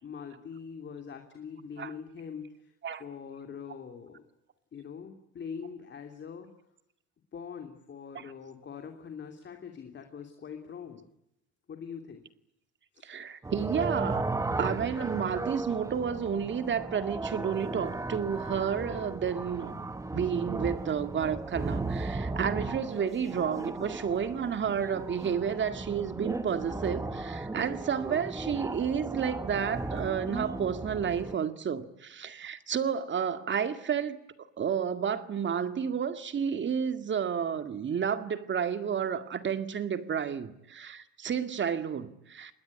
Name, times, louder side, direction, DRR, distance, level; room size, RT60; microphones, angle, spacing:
voice 1, 0.0-2.7 3.0-4.2 4.7-6.5 7.3-11.0 11.7-12.2 12.9-13.0, left 6 dB, 40° left, 2.9 m, -43 dB
voice 2, 13.0-14.3 14.6-19.8 20.1-34.2 34.6-42.5, right 7 dB, 40° right, 2.1 m, -31 dB
sound 1, 13.4-31.4, right 2 dB, 10° right, 1.2 m, -36 dB
27.0 x 20.5 x 9.7 m
cardioid pair, 145°, 30 cm